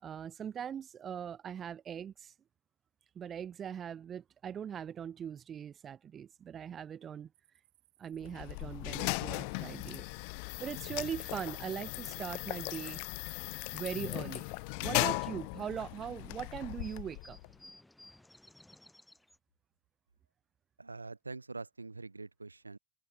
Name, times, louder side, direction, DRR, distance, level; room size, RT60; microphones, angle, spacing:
voice 1, 0.0-2.3 3.2-7.3 8.0-10.0 10.6-13.0 13.7-14.4 14.8-17.4, right 8 dB, 25° right, 0.5 m, -41 dB
sound 1, 7.3-16.6, right 18 dB, 50° right, 4.5 m, -72 dB
sound 2, 8.2-17.5, left 39 dB, 45° left, 0.4 m, -37 dB
sound 3, 16.7-19.4, left 1 dB, 5° left, 2.8 m, -59 dB
voice 2, 20.8-22.8, right 3 dB, 80° right, 0.4 m, -44 dB
figure-of-eight pair, 90°, 0 cm